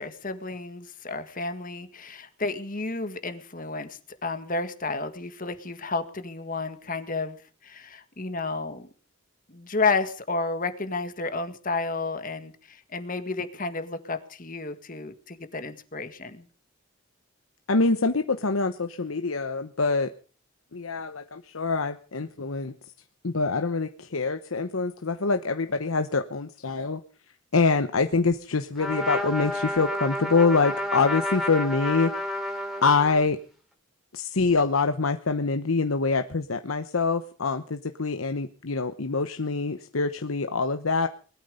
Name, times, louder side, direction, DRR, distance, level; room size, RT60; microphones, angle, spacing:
voice 1, 0.0-7.4 7.6-8.9 9.5-16.5, left 3 dB, 40° left, 10 dB, 1.8 m, -31 dB
voice 2, 17.7-20.1 20.7-22.7 23.2-27.0 27.5-32.1 32.8-33.4 34.1-41.1, left 4 dB, 85° left, 8 dB, 1.0 m, -25 dB
Trumpet, 28.8-33.3, left 1 dB, ahead, 3.0 m, -30 dB
20.5 x 13.0 x 5.3 m, 0.42 s
head